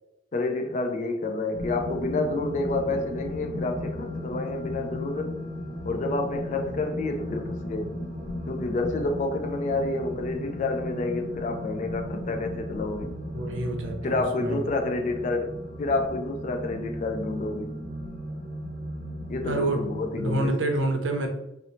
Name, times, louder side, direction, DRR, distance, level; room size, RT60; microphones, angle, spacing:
voice 1, 0.3-5.4 5.8-8.0 8.5-13.2 14.0-15.5 15.8-17.8 19.3-20.5, left 2 dB, 40° left, 0.3 m, -29 dB
sound 1, 1.5-20.5, left 1 dB, 25° right, 1.0 m, -36 dB
voice 2, 13.3-14.6 19.4-19.8 20.2-21.3, right 2 dB, 90° right, 0.6 m, -27 dB
2.6 x 2.0 x 3.0 m
head